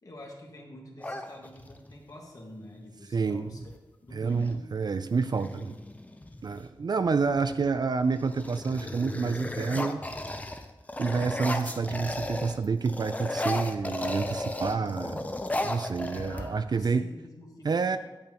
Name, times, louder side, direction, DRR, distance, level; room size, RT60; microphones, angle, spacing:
voice 1, 0.0-3.6 4.0-4.7 5.4-5.8 16.2-18.0, left 1 dB, 45° left, -1 dB, 1.7 m, -47 dB
sound 1, 1.0-1.9 3.6-3.8 4.1-4.6 5.1-6.6 7.3-7.7 8.0-12.6 12.8-16.8, left 1 dB, 20° left, 0.6 m, -35 dB
voice 2, 3.1-3.4 4.1-5.7 6.4-10.0 11.0-15.3 15.6-17.1 17.6-18.0, right 5 dB, 55° right, 11 dB, 0.4 m, -28 dB
9.1 x 8.5 x 3.0 m, 1.1 s
wide cardioid pair, 100°, 9 cm